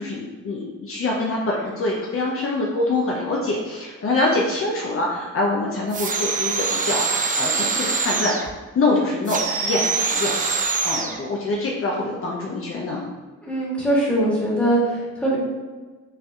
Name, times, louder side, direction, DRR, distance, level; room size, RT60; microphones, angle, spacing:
voice 1, 0.0-8.5 8.7-10.5 10.8-13.0, left 2 dB, 45° left, -3 dB, 0.7 m, -25 dB
sound 1, 5.9-8.5 9.3-11.2, right 4 dB, 25° right, 0.4 m, -24 dB
voice 2, 13.4-15.4, right 1 dB, 5° left, -6 dB, 1.5 m, -21 dB
5.4 x 2.7 x 2.3 m, 1.3 s
cardioid pair, 90°, 30 cm